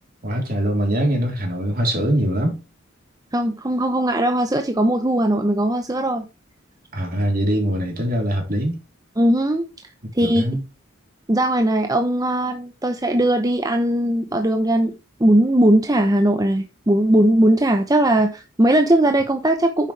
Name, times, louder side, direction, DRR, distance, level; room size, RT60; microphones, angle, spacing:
voice 1, 0.2-2.6 6.9-8.8 10.2-10.6, right 1 dB, 50° right, 3.5 m, -22 dB
voice 2, 3.3-6.3 9.2-9.7 10.1-10.4 11.3-19.9, right 1 dB, 20° right, 0.8 m, -19 dB
10.0 x 7.3 x 3.3 m
head